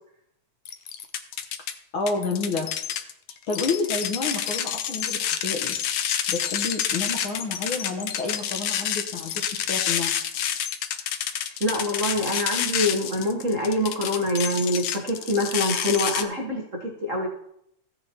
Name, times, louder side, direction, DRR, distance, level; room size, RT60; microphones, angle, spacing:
sound 1, 0.7-1.7 2.1-16.2, left 9 dB, 80° left, 1.3 m, -28 dB
voice 1, 1.9-2.7 3.5-5.7 6.3-10.1, left 3 dB, 60° left, 1 dB, 1.4 m, -29 dB
voice 2, 11.6-17.3, left 1 dB, 65° right, 0 dB, 0.7 m, -25 dB
16.5 x 8.7 x 2.9 m, 0.74 s
omnidirectional pair, 3.5 m